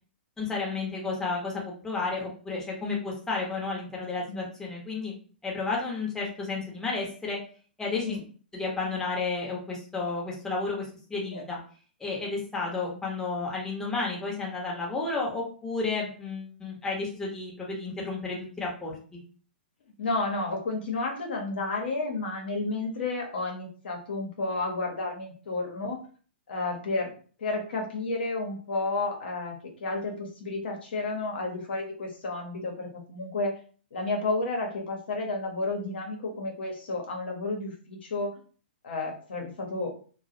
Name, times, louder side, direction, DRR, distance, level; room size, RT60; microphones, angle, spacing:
voice 1, 0.4-5.1 5.4-7.4 7.8-8.2 8.5-10.8 11.1-11.6 12.0-19.2, left 3 dB, 10° left, -3 dB, 0.8 m, -32 dB
voice 2, 20.0-26.0 26.5-27.1 27.4-33.5 33.9-38.3 38.8-39.9, left 2 dB, 70° left, 1 dB, 0.7 m, -31 dB
2.3 x 2.0 x 2.6 m, 0.41 s
hypercardioid pair, 115°, 6 cm